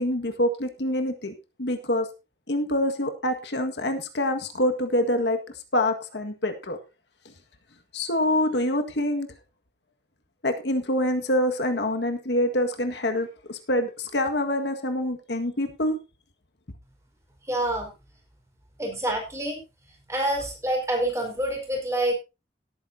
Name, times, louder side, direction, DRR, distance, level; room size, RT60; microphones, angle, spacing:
voice 1, 0.0-1.3 1.6-2.1 2.5-5.4 5.7-6.8 7.9-9.3 10.4-16.0, left 1 dB, 75° left, 6 dB, 1.7 m, -26 dB
voice 2, 17.4-17.9 18.8-19.6 20.1-22.1, right 1 dB, 15° right, 0 dB, 4.6 m, -27 dB
17.5 x 9.2 x 2.7 m, 0.27 s
head